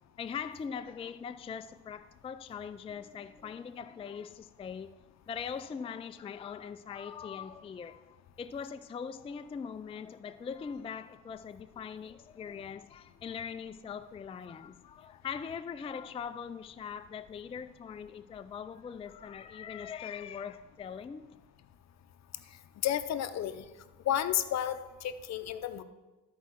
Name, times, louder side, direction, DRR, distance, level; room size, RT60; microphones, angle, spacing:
voice 1, 0.2-4.9 5.3-21.2, left 7 dB, 20° left, 0.3 m, -41 dB
voice 2, 22.8-23.6 24.0-25.8, left 11 dB, 60° left, 0.6 m, -32 dB
13.0 x 4.6 x 4.5 m
cardioid pair, 90°, 30 cm